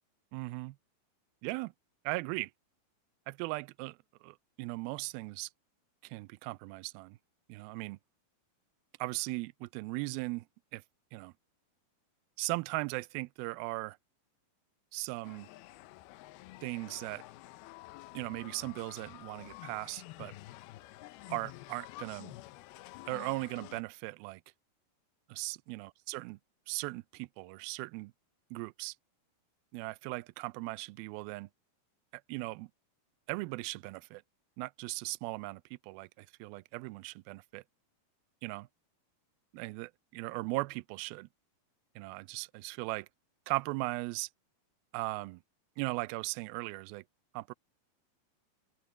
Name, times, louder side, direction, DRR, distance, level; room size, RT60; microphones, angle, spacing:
voice 1, 0.3-0.8 1.4-1.7 2.1-2.5 3.3-5.5 6.0-7.2 7.5-8.0 9.0-10.5 10.7-10.8 11.1-11.3 12.4-14.0 14.9-15.5 16.6-17.2 18.1-20.3 21.3-22.4 23.1-24.4 25.3-26.4 26.7-28.1 28.5-29.0 29.7-31.5 32.3-32.7 33.3-34.2 34.6-37.6 38.4-38.7 39.5-41.3 42.0-43.1 43.5-44.3 44.9-45.4 45.8-47.0 47.3-47.5, right 23 dB, 80° right, 2.3 m, -38 dB
sound 1, 15.2-23.8, left 17 dB, 80° left, 2.6 m, -50 dB
open air
omnidirectional pair, 4.5 m